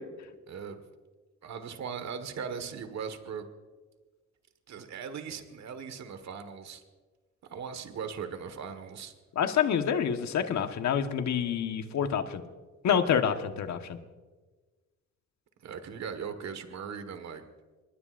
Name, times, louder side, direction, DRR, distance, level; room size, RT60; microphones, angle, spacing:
voice 1, 0.5-0.8 1.4-3.5 4.7-6.8 7.5-9.1 15.6-17.5, right 6 dB, 65° right, 8 dB, 1.7 m, -39 dB
voice 2, 9.4-12.4 12.8-14.0, left 8 dB, 65° left, 7 dB, 1.4 m, -27 dB
24.0 x 20.5 x 2.6 m, 1.3 s
cardioid pair, 90°, 30 cm